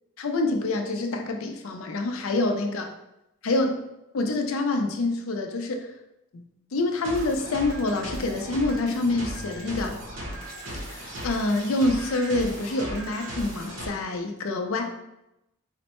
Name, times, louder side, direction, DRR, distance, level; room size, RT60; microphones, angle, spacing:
voice 1, 0.2-2.9 3.4-3.8 4.1-5.9 6.3-6.4 6.7-10.0 10.9-14.8, left 2 dB, 85° left, 4 dB, 0.5 m, -26 dB
sound 1, 7.0-13.9, equal, 70° right, 0.9 m, -37 dB
4.2 x 2.1 x 2.9 m, 0.87 s
head